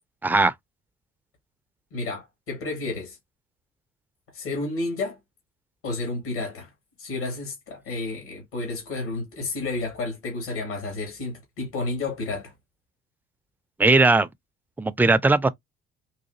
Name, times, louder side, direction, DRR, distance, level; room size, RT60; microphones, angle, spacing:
voice 1, 0.2-0.5 13.8-14.3 14.8-15.5, right 3 dB, 5° right, 0.4 m, -18 dB
voice 2, 1.9-3.2 4.3-5.2 5.8-6.7 7.0-12.5, left 3 dB, 75° left, 1.6 m, -31 dB
4.0 x 2.5 x 2.6 m
hypercardioid pair, 50°, 34 cm